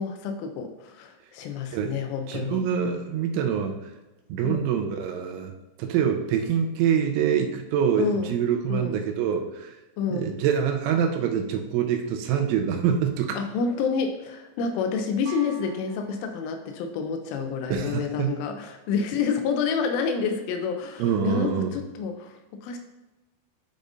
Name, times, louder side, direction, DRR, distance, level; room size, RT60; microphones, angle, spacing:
voice 1, 0.0-2.7 4.4-4.6 8.0-8.3 8.7-9.0 10.0-10.4 13.3-22.8, left 5 dB, 85° left, 6 dB, 3.2 m, -29 dB
voice 2, 2.3-3.8 4.3-5.5 5.8-9.7 10.1-13.4 17.7-18.3 21.0-21.8, right 8 dB, 85° right, 3 dB, 3.0 m, -25 dB
sound 1, 15.3-17.0, right 4 dB, 65° right, 2.6 m, -46 dB
10.5 x 5.1 x 2.6 m, 1.0 s
omnidirectional pair, 5.6 m